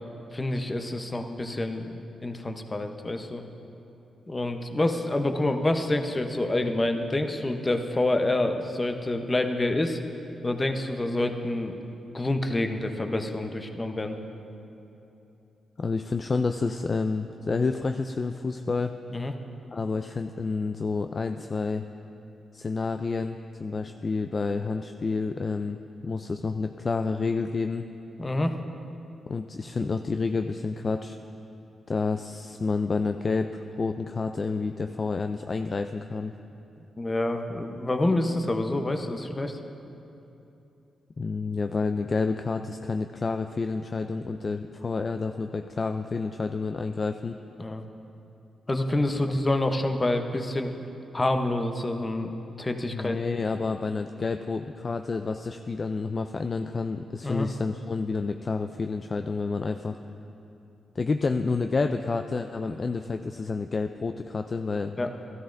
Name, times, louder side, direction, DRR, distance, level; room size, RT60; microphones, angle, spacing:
voice 1, 0.3-1.9 2.2-3.4 4.3-10.0 10.4-11.8 12.1-14.2 19.1-19.3 28.2-28.5 37.0-39.6 47.6-47.8 48.7-50.7 51.1-52.3 52.6-53.2 57.2-57.5 65.0-65.1, left 2 dB, 25° left, 5 dB, 0.8 m, -27 dB
voice 2, 15.8-18.9 19.7-21.8 22.5-27.8 29.3-31.2 31.9-36.3 41.2-47.4 52.9-60.0 61.0-64.9, left 4 dB, 40° left, 7 dB, 0.3 m, -29 dB
13.5 x 12.5 x 2.6 m, 2.9 s
cardioid pair, 65°, 0 cm